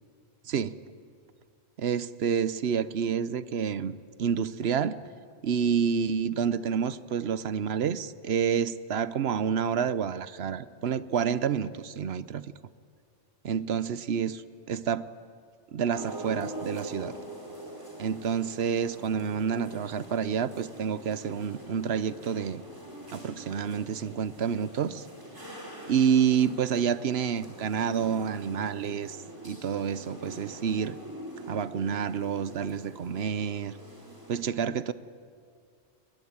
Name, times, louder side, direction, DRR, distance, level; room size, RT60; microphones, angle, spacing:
voice 1, 0.5-0.8 1.8-5.0 5.4-12.5 13.4-14.4 14.7-15.1 15.7-17.2 18.0-22.6 23.1-25.0 25.9-29.2 29.4-31.0 31.5-33.7 34.3-34.9, right 7 dB, 70° right, 15 dB, 1.0 m, -28 dB
sound 1, 15.9-34.4, right 1 dB, 20° right, 4.7 m, -44 dB
22.0 x 21.5 x 9.7 m, 2.3 s
omnidirectional pair, 1.1 m